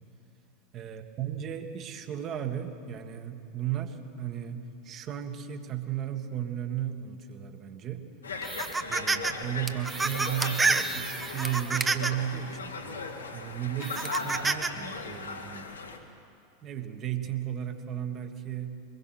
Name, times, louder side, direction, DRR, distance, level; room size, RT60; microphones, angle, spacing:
voice 1, 0.7-8.1 8.9-12.7 13.3-15.7 16.6-18.8, right 10 dB, 35° right, 7 dB, 1.6 m, -35 dB
Conversation, 8.2-16.0, left 4 dB, 75° left, 1.7 m, -38 dB
sound 1, 8.4-9.3 9.7-12.3 12.9-13.0 13.8-14.7, right 3 dB, 15° right, 1.0 m, -29 dB
23.0 x 20.5 x 5.9 m, 2.6 s
figure-of-eight pair, 85°, 0 cm